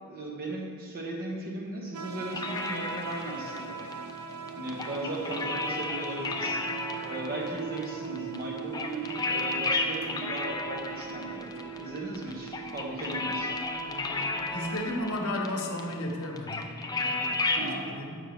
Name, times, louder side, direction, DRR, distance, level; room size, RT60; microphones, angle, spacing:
voice 1, 0.1-3.8 4.5-6.6 7.0-11.5 11.8-13.5 17.6-17.9, right 1 dB, 45° right, -1 dB, 1.0 m, -37 dB
sound 1, 1.9-15.2, right 8 dB, 75° right, 0.4 m, -41 dB
sound 2, 2.3-17.7, left 3 dB, 15° left, 0.3 m, -34 dB
sound 3, 9.7-14.0 15.1-16.9, left 1 dB, 45° left, 0.7 m, -56 dB
voice 2, 13.7-18.2, left 1 dB, 75° left, 2 dB, 0.9 m, -35 dB
7.7 x 5.3 x 3.5 m, 2.2 s
head